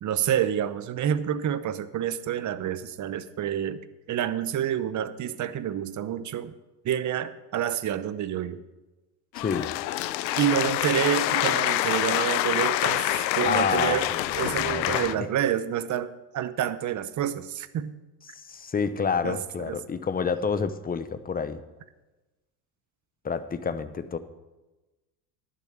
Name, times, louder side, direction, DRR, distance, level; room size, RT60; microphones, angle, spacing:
voice 1, 0.0-6.5 6.8-8.6 10.4-14.1 14.4-18.0 19.2-19.4 19.7-19.8, right 10 dB, 35° right, 14 dB, 0.8 m, -28 dB
sound 1, 9.3-15.1, left 15 dB, 85° left, 0.6 m, -26 dB
voice 2, 9.4-9.7 13.4-15.3 18.3-21.6 23.2-24.2, left 5 dB, 20° left, 12 dB, 0.8 m, -29 dB
11.5 x 6.9 x 7.4 m, 1.1 s
hypercardioid pair, 85°, 50 cm